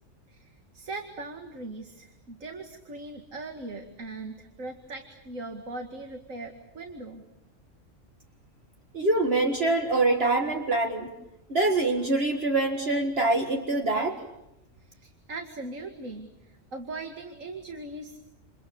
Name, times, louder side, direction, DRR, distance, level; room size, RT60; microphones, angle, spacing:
voice 1, 0.3-7.2 14.8-18.2, right 2 dB, 80° right, 4 dB, 2.5 m, -40 dB
voice 2, 8.9-11.1 11.5-14.2, right 2 dB, 50° right, 3 dB, 2.1 m, -25 dB
29.0 x 28.5 x 7.1 m, 0.92 s
omnidirectional pair, 1.3 m